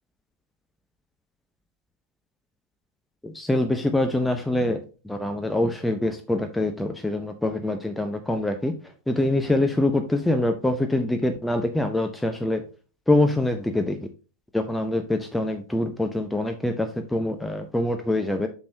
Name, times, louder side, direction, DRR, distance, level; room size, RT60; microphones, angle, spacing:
voice 1, 3.2-4.8 5.0-12.6 13.1-14.1 14.5-18.5, left 1 dB, 5° left, 5 dB, 0.7 m, -24 dB
8.5 x 6.2 x 2.8 m, 0.35 s
figure-of-eight pair, 90°, 0 cm